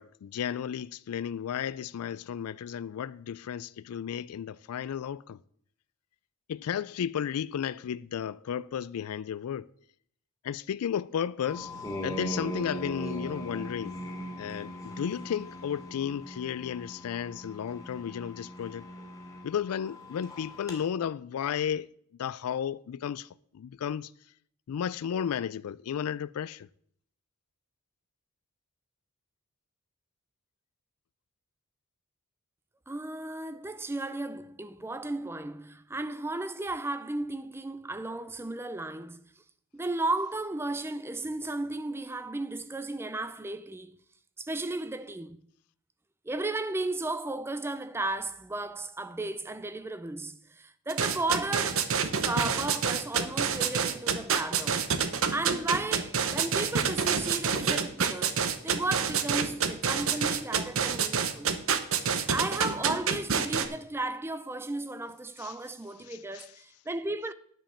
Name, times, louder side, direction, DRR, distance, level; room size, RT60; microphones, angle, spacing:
voice 1, 0.0-5.4 6.5-9.7 10.4-11.7 12.0-14.0 14.4-18.9 19.4-21.9 22.2-23.3 23.5-24.1 24.7-26.7 65.4-65.5 66.1-66.5, left 8 dB, 80° left, 0.3 m, -33 dB
sound 1, 11.4-20.8, equal, 15° left, 1.9 m, -40 dB
voice 2, 32.9-39.2 39.7-44.0 44.4-45.4 46.2-51.9 52.2-54.9 55.3-61.6 62.3-67.3, right 2 dB, 10° right, 0.4 m, -34 dB
sound 2, 50.9-63.7, right 6 dB, 65° right, 0.8 m, -27 dB
10.0 x 5.3 x 7.1 m
head